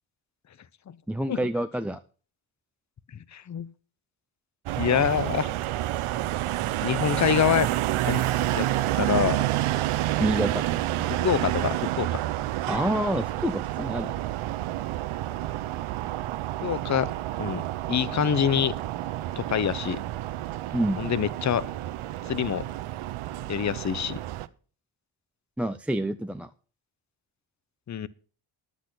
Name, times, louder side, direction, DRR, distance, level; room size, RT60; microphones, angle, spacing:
voice 1, 1.1-2.0 10.2-10.6 12.7-14.1 20.7-21.1 25.6-26.5, right 1 dB, 5° right, 7 dB, 0.4 m, -27 dB
voice 2, 3.3-3.7 4.8-5.5 6.8-7.7 8.0-8.2 8.5-8.7 9.0-9.4 11.2-12.2 16.6-17.1 17.4-17.6 17.9-18.7 19.4-20.0 21.0-21.7 22.3-22.7 23.5-24.2 27.9-28.1, left 8 dB, 35° left, 19 dB, 0.7 m, -25 dB
sound 1, 4.7-24.5, right 14 dB, 75° right, 0.8 m, -29 dB
11.0 x 8.2 x 5.9 m, 0.39 s
cardioid pair, 85°, 50 cm